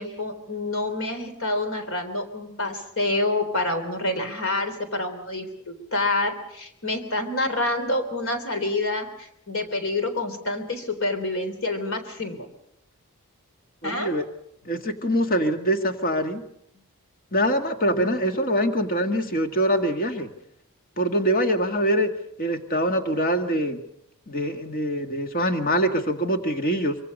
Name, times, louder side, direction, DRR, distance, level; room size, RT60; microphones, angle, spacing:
voice 1, 0.0-12.5 13.8-14.2 17.9-18.2, left 2 dB, 65° left, 7 dB, 3.6 m, -27 dB
voice 2, 13.8-14.2 14.7-16.4 17.3-20.3 21.0-22.1 22.4-23.8 24.3-27.0, equal, 40° left, 5 dB, 1.9 m, -24 dB
25.0 x 24.0 x 5.4 m, 0.76 s
head